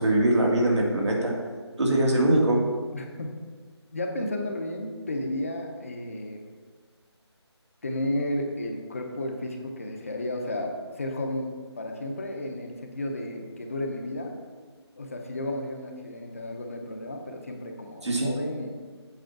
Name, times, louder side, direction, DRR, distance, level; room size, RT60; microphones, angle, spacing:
voice 1, 0.0-1.3 1.8-2.6 18.0-18.3, right 1 dB, 80° right, -2 dB, 2.2 m, -22 dB
voice 2, 2.9-3.3 3.9-6.4 7.8-14.4 15.0-18.7, left 1 dB, 30° left, 3 dB, 0.6 m, -33 dB
8.0 x 4.2 x 5.8 m, 1.5 s
figure-of-eight pair, 170°, 14 cm